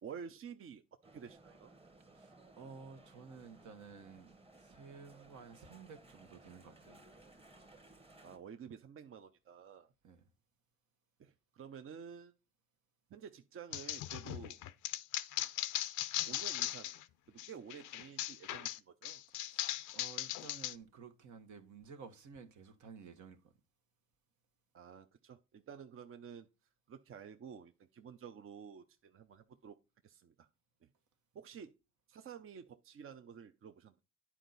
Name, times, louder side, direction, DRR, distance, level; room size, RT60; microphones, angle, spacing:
voice 1, 0.0-0.8 1.1-1.7 8.2-9.9 11.2-12.3 13.1-14.6 16.3-16.9 17.3-19.2 24.7-26.5 26.9-29.8 30.0-30.5 30.8-30.9 31.3-31.7 32.1-34.0, right 7 dB, 45° right, 0.6 m, -51 dB
sound 1, 1.0-8.4, right 2 dB, 20° right, 1.1 m, -60 dB
voice 2, 2.1-7.0 10.0-10.2 19.4-23.5, right 5 dB, 75° right, 1.3 m, -54 dB
sound 2, 13.7-17.0 17.4-20.7, left 14 dB, 90° left, 0.5 m, -39 dB
10.0 x 4.6 x 3.9 m
cardioid pair, 90°, 30 cm